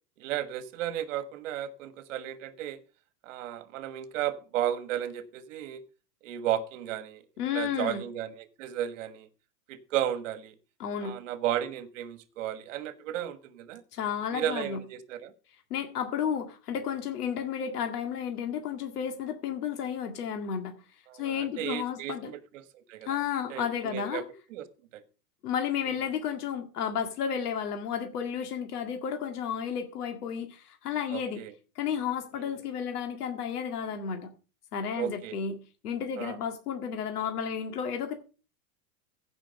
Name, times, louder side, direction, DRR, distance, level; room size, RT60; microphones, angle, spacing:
voice 1, 0.2-2.8 3.2-5.8 6.2-7.2 7.5-9.3 9.7-10.5 11.0-13.8 14.3-15.3 21.1-23.2 23.5-24.2 24.5-24.6 24.9-25.0 25.9-26.0 31.1-31.5 32.4-32.5 35.0-35.3 36.2-36.4, right 11 dB, 55° right, 13 dB, 1.5 m, -34 dB
voice 2, 7.4-8.0 10.8-11.2 13.9-14.8 15.7-20.7 21.2-22.3 23.1-24.2 25.4-31.4 31.8-34.3 34.7-35.5 35.8-38.1, left 8 dB, 90° left, 6 dB, 2.0 m, -32 dB
15.5 x 6.2 x 5.2 m, 0.34 s
supercardioid pair, 170°, 45 cm